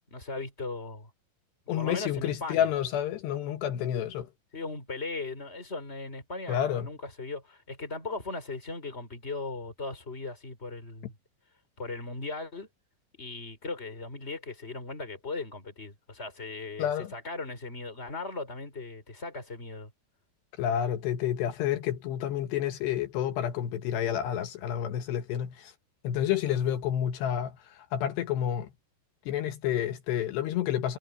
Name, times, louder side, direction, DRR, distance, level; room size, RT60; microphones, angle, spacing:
voice 1, 0.1-1.1 1.8-2.7 4.5-11.2 11.8-12.7 13.2-19.9, left 3 dB, 15° left, 4.8 m, -38 dB
voice 2, 1.7-4.3 6.5-6.9 16.8-17.1 20.6-25.7 26.0-28.7 29.3-31.0, left 10 dB, 80° left, 3.4 m, -29 dB
omnidirectional pair, 4.9 m